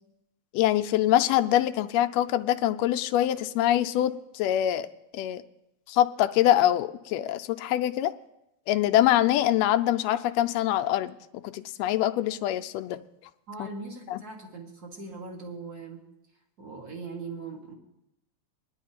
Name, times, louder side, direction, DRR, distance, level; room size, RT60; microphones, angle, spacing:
voice 1, 0.5-4.9 5.1-5.4 5.9-8.1 8.7-11.2 11.4-13.0 13.6-13.7 14.1-14.2, left 13 dB, 80° left, 10 dB, 1.6 m, -24 dB
voice 2, 13.5-16.0 16.6-17.7, right 3 dB, 40° right, 1 dB, 1.8 m, -40 dB
21.0 x 11.0 x 2.9 m, 0.85 s
omnidirectional pair, 3.4 m